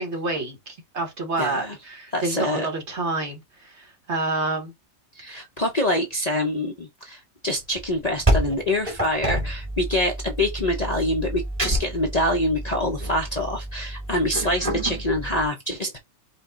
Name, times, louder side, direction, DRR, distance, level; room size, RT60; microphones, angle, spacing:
voice 1, 0.0-4.7, right 3 dB, 55° right, 1.8 m, -28 dB
voice 2, 1.4-1.8 2.1-2.7 5.1-16.0, left 1 dB, 35° left, 0.7 m, -25 dB
sound 1, 7.8-15.5, right 1 dB, 25° right, 1.8 m, -28 dB
5.1 x 2.4 x 3.8 m
omnidirectional pair, 1.4 m